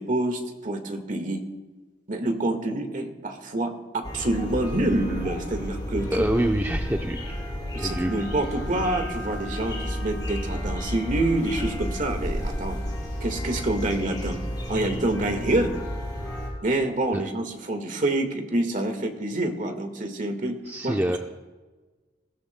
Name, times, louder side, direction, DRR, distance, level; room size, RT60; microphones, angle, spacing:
voice 1, 0.0-1.4 2.1-6.3 7.7-12.8 13.2-14.4 14.7-15.7 16.6-20.6 20.8-21.2, right 1 dB, 45° right, 5 dB, 1.6 m, -27 dB
sound 1, 4.0-16.5, equal, 20° left, 5.0 m, -32 dB
voice 2, 6.1-7.4 7.7-8.1 17.1-17.2 20.6-21.2, right 1 dB, 10° right, 2 dB, 0.6 m, -26 dB
21.0 x 15.5 x 2.2 m, 1.3 s
head